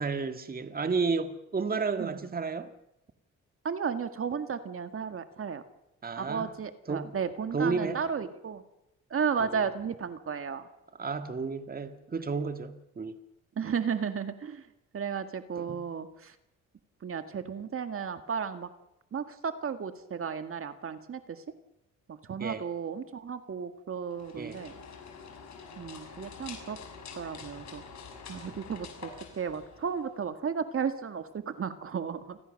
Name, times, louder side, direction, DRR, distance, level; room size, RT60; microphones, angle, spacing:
voice 1, 0.0-2.7 6.0-6.5 6.9-7.2 7.5-8.0 11.0-13.2 15.6-15.8 22.4-22.7 24.4-24.6, right 4 dB, 30° right, 1.9 m, -32 dB
voice 2, 3.6-5.6 6.2-8.6 9.1-10.6 13.6-14.7 14.9-16.4 17.0-18.7 19.1-21.4 22.1-24.8 25.8-26.8 27.1-27.8 28.3-32.4, right 6 dB, 45° right, 2.0 m, -34 dB
sound 1, 24.1-30.3, left 5 dB, 65° left, 6.5 m, -46 dB
29.0 x 20.0 x 6.6 m
cardioid pair, 90°, 30 cm